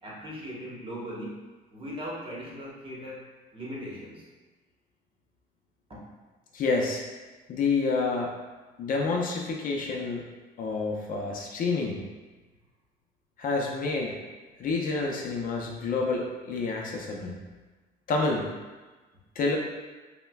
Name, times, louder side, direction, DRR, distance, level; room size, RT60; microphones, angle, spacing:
voice 1, 0.0-1.3 1.7-3.3 3.5-4.3 5.9-6.0, equal, 30° right, -5 dB, 1.1 m, -39 dB
voice 2, 6.5-7.0 7.5-8.3 8.8-10.2 10.6-12.0 13.4-14.2 14.6-17.4 18.1-18.5 19.4-19.6, left 3 dB, 55° left, 0 dB, 0.6 m, -28 dB
5.4 x 2.2 x 2.3 m, 1.3 s
cardioid pair, 110°, 17 cm